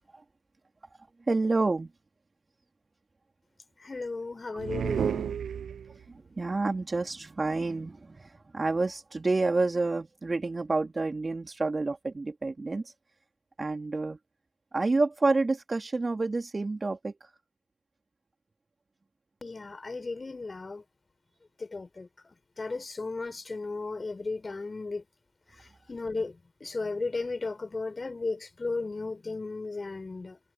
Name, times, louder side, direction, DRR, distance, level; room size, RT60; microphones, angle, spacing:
voice 1, 1.3-1.9 6.1-12.9 13.6-14.2 14.7-17.3, right 3 dB, 15° right, 3.1 m, -29 dB
voice 2, 3.8-5.4 19.4-20.8 21.6-22.1 22.6-25.0 25.6-30.4, left 3 dB, 15° left, 5.5 m, -35 dB
sound 1, 4.6-6.1, right 8 dB, 35° right, 0.6 m, -31 dB
hypercardioid pair, 80°, 0 cm